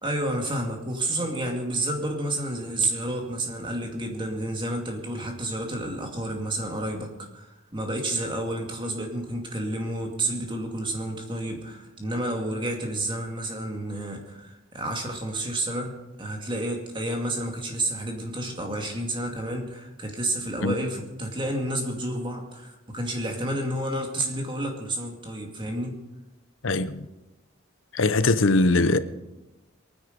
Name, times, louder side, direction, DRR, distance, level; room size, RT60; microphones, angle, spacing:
voice 1, 0.0-26.0, right 1 dB, 25° right, 2.3 m, -30 dB
voice 2, 27.9-29.0, left 2 dB, 70° left, 0.8 m, -21 dB
22.5 x 9.9 x 5.2 m
head